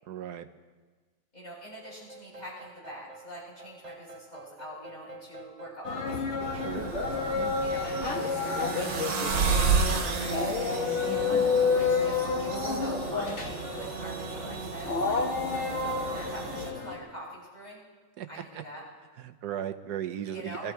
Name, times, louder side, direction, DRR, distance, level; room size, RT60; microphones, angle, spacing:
voice 1, 0.1-0.5 6.5-6.9 7.3-7.6 18.2-18.3 18.5-18.6 19.2-20.7, right 10 dB, 65° right, 9 dB, 1.2 m, -36 dB
voice 2, 1.3-6.2 7.6-15.2 15.9-17.8 18.3-18.8 20.3-20.7, equal, 20° left, -7 dB, 7.1 m, -44 dB
sound 1, 1.7-7.0, right 2 dB, 40° right, 0.5 m, -48 dB
sound 2, 5.8-17.0, left 5 dB, 40° left, 1.5 m, -30 dB
sound 3, 6.4-16.7, right 4 dB, 90° right, 2.2 m, -32 dB
21.0 x 13.5 x 4.6 m, 1.4 s
omnidirectional pair, 2.0 m